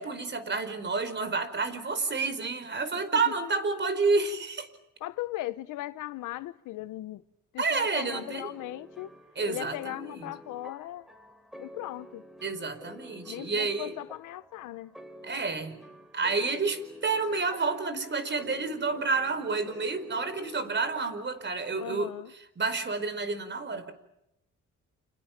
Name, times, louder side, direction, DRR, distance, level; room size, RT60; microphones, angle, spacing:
voice 1, 0.0-4.7 7.6-8.5 9.3-10.3 12.4-13.9 15.2-15.8 16.1-23.9, right 4 dB, 35° right, 4.8 m, -30 dB
voice 2, 5.0-7.2 7.5-9.1 9.5-11.0 11.5-12.3 13.3-15.0 21.8-22.3, left 16 dB, 90° left, 1.1 m, -38 dB
sound 1, 8.1-21.8, equal, ahead, 4.1 m, -49 dB
30.0 x 27.5 x 6.0 m
cardioid pair, 90°, 30 cm